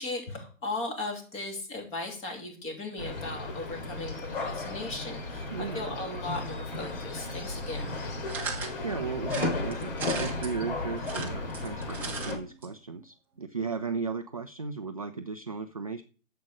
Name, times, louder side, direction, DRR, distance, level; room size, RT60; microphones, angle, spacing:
voice 1, 0.0-7.9, left 2 dB, 15° left, 1 dB, 2.9 m, -37 dB
sound 1, 3.0-12.4, left 2 dB, 40° left, 3.8 m, -34 dB
voice 2, 5.5-5.9 8.8-16.0, right 5 dB, 30° right, 8 dB, 0.5 m, -35 dB
sound 2, 8.3-8.7 9.3-10.5 11.0-12.3 12.6-12.7 12.9-13.0, right 5 dB, 5° right, 0.9 m, -37 dB
11.5 x 7.7 x 4.9 m, 0.39 s
figure-of-eight pair, 140°, 40 cm